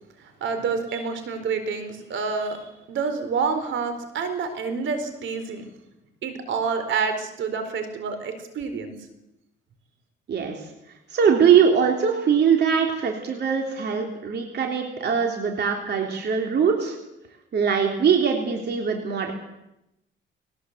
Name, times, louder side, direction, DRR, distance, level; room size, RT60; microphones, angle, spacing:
voice 1, 0.2-5.6 6.2-8.9, right 5 dB, 75° right, 8 dB, 4.2 m, -28 dB
voice 2, 10.3-10.7 11.1-17.0 17.5-19.3, right 7 dB, 60° right, 2 dB, 3.5 m, -22 dB
21.0 x 19.0 x 8.1 m, 0.87 s
cardioid pair, 90°, 20 cm